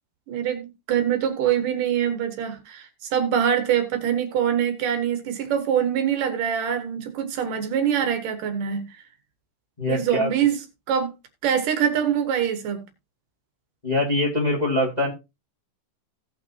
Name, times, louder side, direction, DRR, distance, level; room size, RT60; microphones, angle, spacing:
voice 1, 0.3-8.9 9.9-10.6 10.9-11.1 11.4-12.8, right 9 dB, 70° right, 2.8 m, -24 dB
voice 2, 9.8-10.3 13.8-15.1, left 1 dB, 15° left, 1.6 m, -23 dB
17.5 x 5.9 x 2.8 m
omnidirectional pair, 4.1 m